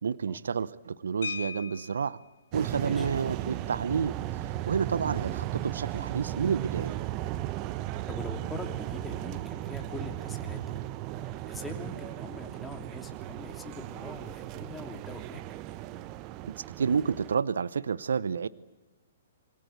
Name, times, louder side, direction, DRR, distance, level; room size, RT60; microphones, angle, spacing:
voice 1, 0.0-2.2 2.5-4.1 4.7-6.9 16.8-18.5, right 6 dB, 70° right, 19 dB, 0.8 m, -29 dB
sound 1, 1.2-2.3 3.7-3.9 4.2-4.4 4.8-5.1, left 6 dB, 65° left, 1.7 m, -39 dB
sound 2, 2.5-17.3, right 14 dB, 35° right, 1.0 m, -36 dB
voice 2, 2.7-3.1 8.1-10.8 11.2-15.4, left 3 dB, 5° left, 4 dB, 2.9 m, -43 dB
27.0 x 22.0 x 8.3 m, 1.1 s
figure-of-eight pair, 120°, 0 cm